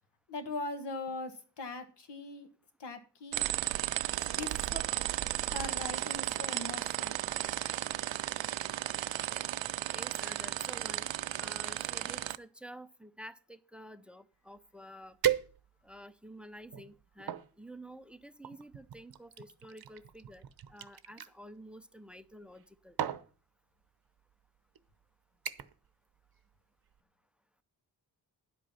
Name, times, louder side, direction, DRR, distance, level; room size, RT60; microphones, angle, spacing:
voice 1, 0.3-2.5 2.8-3.6 4.4-4.8 5.5-7.2, left 2 dB, 65° left, 7 dB, 1.8 m, -41 dB
sound 1, 3.3-12.4, right 14 dB, 90° right, 0.6 m, -34 dB
voice 2, 9.9-15.2 15.8-23.0, equal, ahead, 14 dB, 0.5 m, -50 dB
sound 2, 14.6-14.7 15.2-16.0 16.6-17.5 18.4-21.3 22.4-22.7 23.0-23.3 24.2-24.3 24.8-25.0 25.5-25.9 26.2-26.5 26.9-27.0, right 10 dB, 55° right, 0.8 m, -36 dB
10.5 x 8.1 x 5.6 m, 0.37 s
wide cardioid pair, 155°, 44 cm